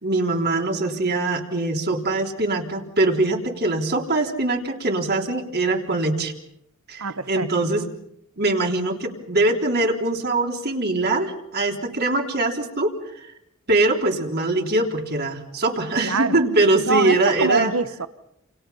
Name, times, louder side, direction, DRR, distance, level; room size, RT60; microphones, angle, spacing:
voice 1, 0.0-6.3 6.9-7.9 8.4-13.3 13.7-17.7, right 2 dB, 50° right, 3.6 m, -22 dB
voice 2, 7.0-7.5 16.0-16.4 16.9-18.1, right 4 dB, 85° right, 1.4 m, -23 dB
29.0 x 28.5 x 5.7 m
head